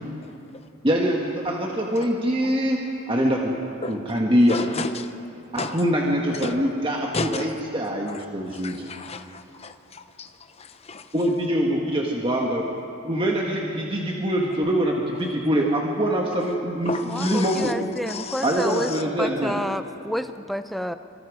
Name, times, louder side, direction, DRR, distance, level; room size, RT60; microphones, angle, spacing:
voice 1, 0.8-2.8 3.1-3.5 3.8-4.6 5.5-8.9 11.1-12.6 13.0-17.8 18.4-19.6, equal, 25° right, -1 dB, 1.7 m, -24 dB
voice 2, 4.5-4.9 5.6-5.8 6.4-6.5 7.1-7.5 8.5-10.3 10.6-11.0 16.8-17.7 18.1-18.5, left 3 dB, 30° left, 8 dB, 0.9 m, -32 dB
voice 3, 17.1-18.9 19.2-20.9, equal, ahead, 9 dB, 0.6 m, -29 dB
26.0 x 26.0 x 5.0 m, 2.7 s
head